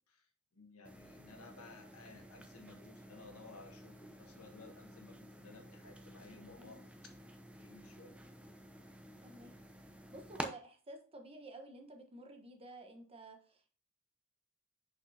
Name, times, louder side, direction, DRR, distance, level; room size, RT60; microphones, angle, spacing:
voice 1, 0.5-8.2, left 3 dB, 75° left, 4 dB, 1.5 m, -57 dB
sound 1, 0.9-10.5, right 1 dB, 5° right, 0.6 m, -51 dB
voice 2, 9.2-9.6 10.1-13.7, right 2 dB, 25° right, 3 dB, 1.1 m, -52 dB
6.2 x 6.2 x 2.8 m, 0.41 s
head